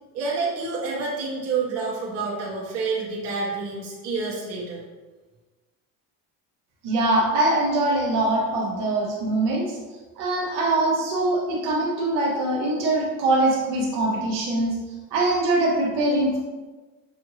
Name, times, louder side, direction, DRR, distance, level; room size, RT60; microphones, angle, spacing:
voice 1, 0.1-4.8, right 4 dB, 50° right, -5 dB, 1.1 m, -28 dB
voice 2, 6.8-9.8 10.2-14.8 15.1-16.4, right 2 dB, 65° right, -3 dB, 1.1 m, -23 dB
6.1 x 2.6 x 3.1 m, 1.3 s
cardioid pair, 175°, 33 cm